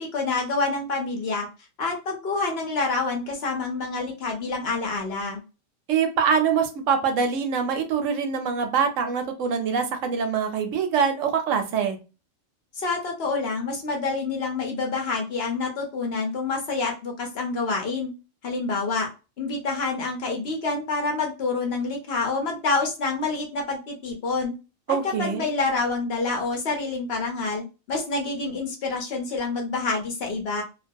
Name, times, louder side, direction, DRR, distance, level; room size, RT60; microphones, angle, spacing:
voice 1, 0.1-1.5 1.8-5.4 12.7-18.1 18.4-19.1 19.4-24.5 25.2-30.6, left 3 dB, 60° left, 1 dB, 0.8 m, -27 dB
voice 2, 5.9-12.0 24.9-25.5, right 6 dB, 75° right, 6 dB, 0.9 m, -24 dB
2.4 x 2.3 x 2.5 m, 0.30 s
omnidirectional pair, 1.4 m